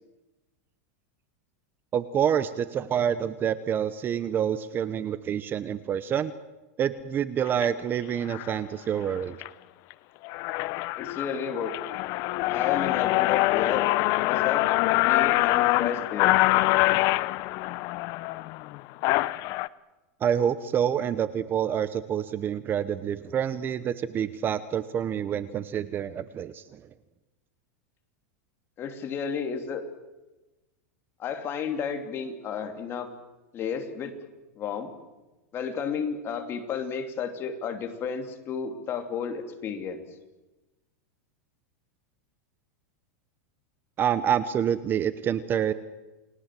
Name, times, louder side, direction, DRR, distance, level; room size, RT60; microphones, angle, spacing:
voice 1, 1.9-6.3 6.8-9.4 20.2-26.8 44.0-45.7, right 9 dB, 25° right, 15 dB, 0.9 m, -27 dB
sound 1, 7.5-7.7 8.3-8.6 9.0-9.5 9.9-10.0 10.2-19.7, left 19 dB, 45° left, 0.7 m, -25 dB
voice 2, 11.0-11.7 12.5-13.9 14.2-14.7 15.0-16.4 28.8-29.8 31.2-33.1 33.5-34.1 34.6-34.9 35.5-40.0, left 6 dB, 30° left, 6 dB, 3.0 m, -32 dB
29.0 x 20.0 x 7.6 m, 1.1 s
supercardioid pair, 145°, 8 cm